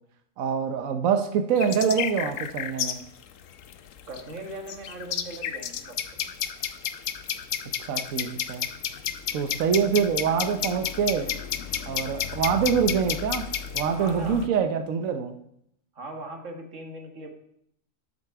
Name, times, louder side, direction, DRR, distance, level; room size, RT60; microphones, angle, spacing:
voice 1, 0.4-3.0 7.9-8.7 9.3-11.3 11.9-15.4, right 7 dB, 85° right, 7 dB, 1.2 m, -25 dB
sound 1, 1.6-14.5, left 9 dB, 75° left, 1.1 m, -32 dB
voice 2, 4.1-6.3 14.0-14.5 15.9-17.3, right 2 dB, 65° right, 4 dB, 1.9 m, -39 dB
12.5 x 6.9 x 4.7 m, 0.74 s
omnidirectional pair, 1.4 m